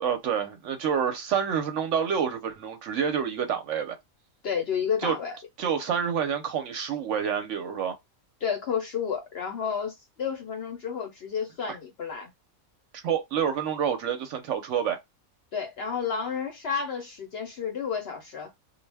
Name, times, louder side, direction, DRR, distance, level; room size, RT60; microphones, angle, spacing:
voice 1, 0.0-4.0 5.0-5.1 5.6-8.0 12.9-15.0, right 7 dB, 65° right, 0.8 m, -28 dB
voice 2, 4.4-5.3 8.4-12.3 15.5-18.5, left 7 dB, 60° left, 0.7 m, -31 dB
2.2 x 2.1 x 3.3 m
omnidirectional pair, 1.5 m